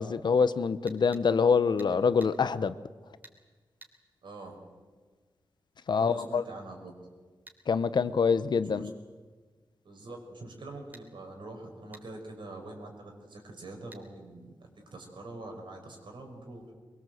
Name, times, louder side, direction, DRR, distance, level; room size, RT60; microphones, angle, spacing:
voice 1, 0.0-2.7 5.9-6.4 7.7-8.9, left 5 dB, 65° left, 14 dB, 0.9 m, -25 dB
sound 1, 0.9-1.3 1.8-1.9 2.2-2.4 3.2-3.4 3.8-4.0 7.5-7.6 10.9-11.1 11.9-12.1 13.9-14.1, right 2 dB, 20° right, 3.4 m, -51 dB
voice 2, 4.2-4.6 5.9-6.9 8.7-8.9 9.8-16.7, right 2 dB, 75° right, 2 dB, 5.6 m, -44 dB
24.0 x 22.0 x 7.9 m, 1.4 s
wide cardioid pair, 110°, 8 cm